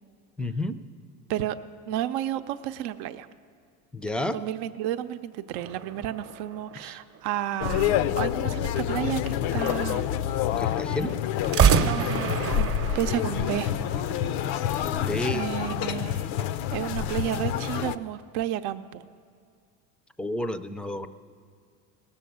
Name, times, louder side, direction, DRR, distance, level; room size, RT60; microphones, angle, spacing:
voice 1, 0.4-0.8 3.9-4.4 6.8-7.0 10.6-11.2 14.9-15.5 20.2-21.1, left 1 dB, 5° left, 11 dB, 0.4 m, -30 dB
voice 2, 1.9-3.3 4.3-10.0 10.9-11.0 11.5-13.7 15.3-16.2 16.7-19.0, right 12 dB, 85° right, 10 dB, 0.7 m, -32 dB
sound 1, 5.6-7.4 11.4-14.5, right 8 dB, 35° right, 0.7 m, -27 dB
sound 2, 7.6-18.0, left 10 dB, 80° left, 0.6 m, -28 dB
18.5 x 7.1 x 9.2 m, 2.2 s
cardioid pair, 120°, 40 cm